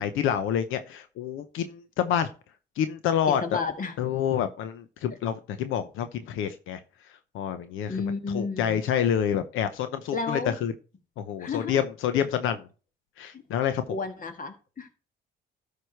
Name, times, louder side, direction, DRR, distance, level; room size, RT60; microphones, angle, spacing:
voice 1, 0.0-2.3 2.8-3.6 4.0-6.8 7.3-7.9 8.3-10.7 11.2-12.6 13.2-13.8, left 9 dB, 90° left, 10 dB, 0.8 m, -27 dB
voice 2, 3.3-4.0 7.9-8.8 10.1-10.6 11.4-11.8 13.9-14.9, left 4 dB, 45° left, 8 dB, 1.8 m, -32 dB
13.0 x 4.9 x 4.6 m, 0.36 s
cardioid pair, 90°, 20 cm